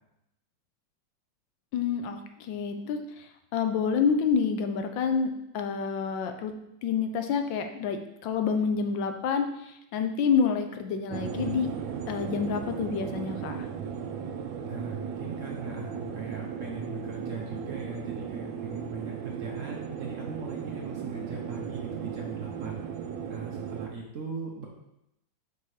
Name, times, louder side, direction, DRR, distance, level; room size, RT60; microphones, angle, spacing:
voice 1, 1.7-6.5 6.8-11.8 12.1-13.7, left 6 dB, 80° left, 6 dB, 1.4 m, -28 dB
sound 1, 11.1-23.9, right 7 dB, 90° right, 1.3 m, -36 dB
voice 2, 14.6-22.8 23.3-24.7, right 4 dB, 55° right, -1 dB, 1.0 m, -39 dB
5.5 x 4.1 x 4.8 m, 0.83 s
omnidirectional pair, 2.0 m